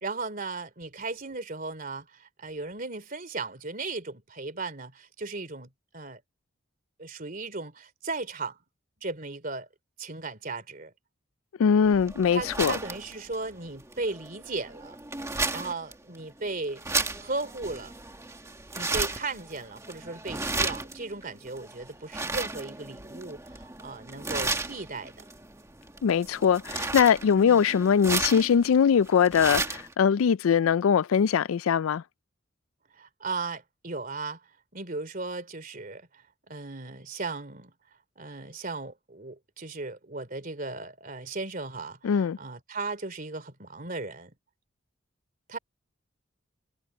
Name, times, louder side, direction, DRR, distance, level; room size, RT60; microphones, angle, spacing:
voice 1, 0.0-6.2 7.0-8.6 9.0-9.7 10.0-10.9 12.3-15.0 15.5-16.8 17.2-17.9 18.7-25.2 27.4-27.6 32.9-34.4 34.7-37.7 38.2-44.3 45.5-45.6, right 3 dB, 45° right, 3.0 m, -36 dB
voice 2, 11.6-12.7 26.0-32.0 42.0-42.4, left 7 dB, 85° left, 0.4 m, -22 dB
sound 1, 11.8-29.9, right 3 dB, 15° right, 1.8 m, -34 dB
head